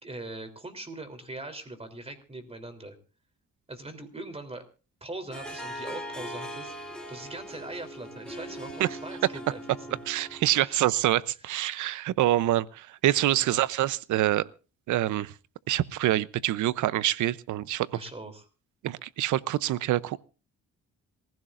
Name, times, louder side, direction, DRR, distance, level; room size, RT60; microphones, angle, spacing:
voice 1, 0.0-3.0 3.7-4.6 5.0-6.7 7.1-9.6 9.9-10.0 10.6-10.9 13.5-13.7 17.9-18.5, right 2 dB, 20° right, 3.5 m, -41 dB
Harp, 5.3-10.8, equal, 5° left, 3.7 m, -40 dB
voice 2, 10.1-14.4 14.9-15.3 15.7-17.9 18.8-20.2, right 14 dB, 75° right, 0.8 m, -26 dB
26.5 x 15.5 x 2.6 m
cardioid pair, 90°, 30 cm